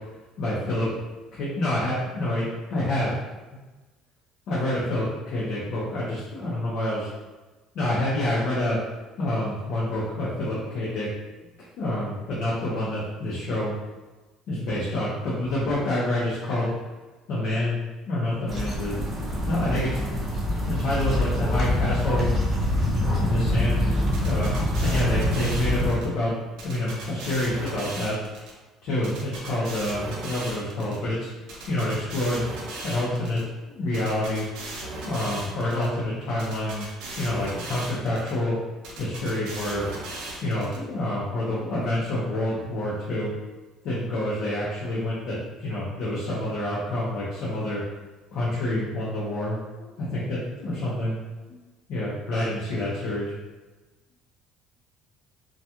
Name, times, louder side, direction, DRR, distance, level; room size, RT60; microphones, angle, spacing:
voice 1, 0.4-0.9 1.3-3.1 4.5-7.1 7.7-8.8 9.2-11.1 11.8-13.7 14.5-16.7 17.3-17.8 18.1-19.0 19.5-22.3 23.2-24.5 24.8-28.2 28.8-31.3 31.7-32.5 32.8-33.4 33.7-34.5 35.0-36.9 37.2-38.6 39.0-39.9 40.4-43.3 43.8-47.8 48.3-51.2 51.5-51.6 51.9-53.3, left 1 dB, 50° left, -8 dB, 0.6 m, -27 dB
sound 1, 18.5-25.9, left 1 dB, 25° right, 0.5 m, -25 dB
sound 2, 24.1-26.1 26.6-28.5 29.0-31.0 31.5-33.4 33.9-35.9 36.4-38.3 38.8-40.8, right 2 dB, 80° right, 0.6 m, -37 dB
2.3 x 2.3 x 2.8 m, 1.2 s
cardioid pair, 170°, 0 cm